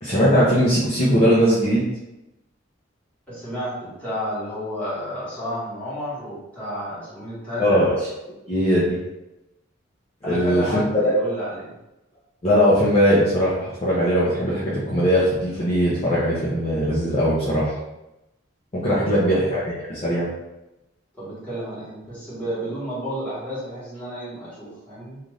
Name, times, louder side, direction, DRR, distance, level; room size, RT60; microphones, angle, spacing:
voice 1, 0.0-1.9 7.5-8.1 8.5-9.0 10.2-10.8 12.4-17.7 18.7-20.3, equal, 30° left, -9 dB, 0.6 m, -20 dB
voice 2, 3.3-7.8 10.2-11.7 18.7-19.2 21.1-25.2, equal, 10° left, -11 dB, 1.3 m, -31 dB
2.6 x 2.5 x 3.1 m, 0.95 s
head